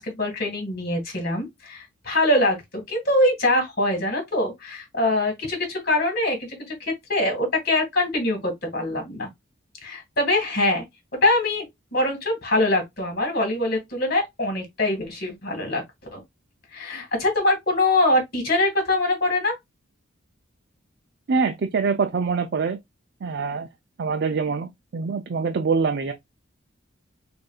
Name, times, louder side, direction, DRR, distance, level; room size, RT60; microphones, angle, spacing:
voice 1, 0.0-2.6 2.9-9.3 9.8-10.8 11.2-11.7 11.9-15.8 16.1-16.2 16.7-19.6, left 1 dB, 50° left, 2.0 m, -23 dB
voice 2, 21.3-22.8 23.2-23.7 24.0-26.1, right 5 dB, 55° right, 0.4 m, -24 dB
6.3 x 2.6 x 2.3 m
head